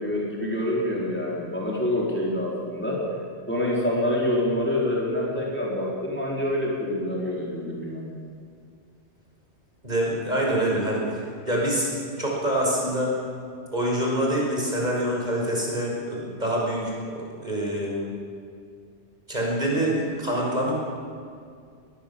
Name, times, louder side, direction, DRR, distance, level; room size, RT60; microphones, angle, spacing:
voice 1, 0.0-3.0 3.5-8.1, left 1 dB, 10° left, -5 dB, 4.6 m, -26 dB
voice 2, 9.8-11.9 12.2-13.2 13.7-18.1 19.3-20.7, right 1 dB, 40° right, -3 dB, 6.0 m, -26 dB
22.5 x 20.5 x 7.3 m, 2.2 s
omnidirectional pair, 1.2 m